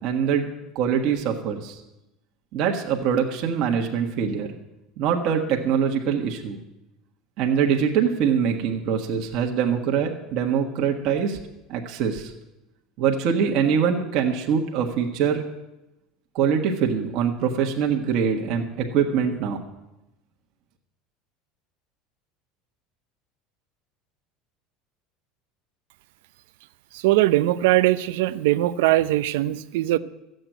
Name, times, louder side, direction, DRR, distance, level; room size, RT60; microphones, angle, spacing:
voice 1, 0.0-0.5 0.7-1.8 2.5-4.5 5.0-6.6 7.4-11.4 11.7-12.3 13.0-15.4 16.3-19.6, right 7 dB, 45° right, 1 dB, 1.5 m, -23 dB
voice 2, 27.0-30.0, right 16 dB, 90° right, 15 dB, 0.7 m, -20 dB
14.5 x 7.9 x 9.1 m, 0.93 s
cardioid pair, 180°, 0 cm